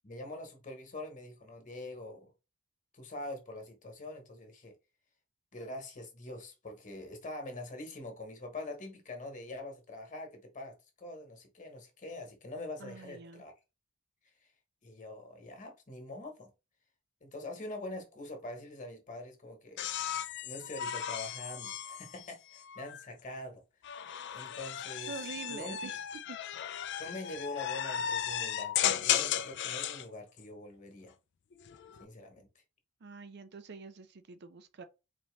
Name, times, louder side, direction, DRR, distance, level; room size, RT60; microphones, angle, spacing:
voice 1, 0.0-2.3 2.9-4.7 5.5-13.5 14.4-14.5 14.8-16.5 17.2-19.9 20.4-23.6 24.3-25.1 25.5-25.8 27.0-31.1 32.0-32.5, left 2 dB, 35° left, 1.2 m, -44 dB
voice 2, 12.8-13.4 25.1-26.0 26.3-26.4 33.0-34.8, right 4 dB, 50° right, 0.5 m, -45 dB
sound 1, 19.8-23.0 23.8-30.0 31.5-32.0, left 10 dB, 55° left, 0.4 m, -35 dB
4.2 x 2.9 x 3.2 m
head